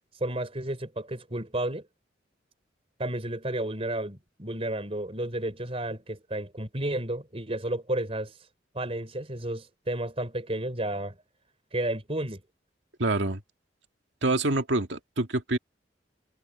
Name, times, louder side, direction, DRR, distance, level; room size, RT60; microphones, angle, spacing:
voice 1, 0.2-1.8 3.0-8.3 8.7-11.2 11.7-12.4, right 1 dB, 35° right, 4.3 m, -32 dB
voice 2, 13.0-13.4 14.2-15.6, right 2 dB, 75° right, 2.1 m, -26 dB
head